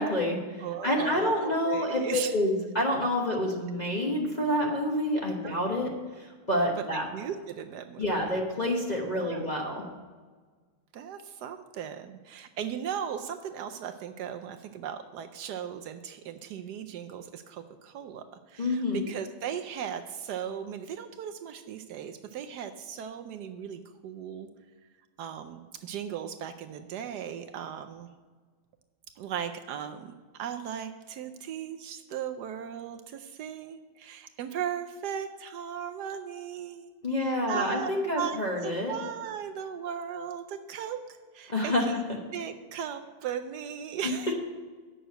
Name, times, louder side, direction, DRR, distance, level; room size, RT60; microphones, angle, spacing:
voice 1, 0.0-5.9 6.2-7.1 8.0-9.8 18.6-19.1 37.0-38.9 41.5-41.9 44.0-44.1, left 1 dB, 30° left, -2 dB, 0.8 m, -28 dB
voice 2, 0.6-2.3 5.4-5.8 7.1-8.3 9.2-9.5 10.9-24.5 25.2-28.1 29.2-30.1 30.4-36.9 37.2-38.4 38.6-41.0 41.3-42.0 42.3-44.3, right 8 dB, 75° right, 7 dB, 0.9 m, -37 dB
7.7 x 6.3 x 8.0 m, 1.4 s
omnidirectional pair, 2.3 m